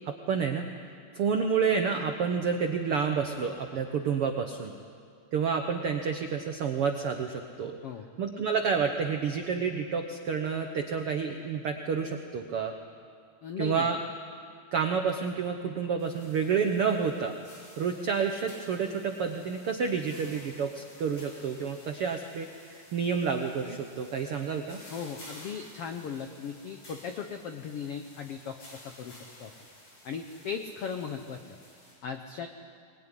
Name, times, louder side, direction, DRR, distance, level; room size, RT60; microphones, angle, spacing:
voice 1, 0.0-0.6 1.1-4.7 5.3-7.7 8.2-12.7 13.6-14.0 14.7-17.3 17.8-22.5 22.9-24.8, right 6 dB, 75° right, 5 dB, 1.3 m, -29 dB
voice 2, 13.4-13.9 24.9-28.6 28.8-29.5 30.0-31.4 32.0-32.5, left 6 dB, 85° left, 6 dB, 1.3 m, -37 dB
sound 1, 16.0-31.9, left 1 dB, 50° left, 8.0 m, -53 dB
21.5 x 21.5 x 10.0 m, 2.2 s
omnidirectional pair, 4.2 m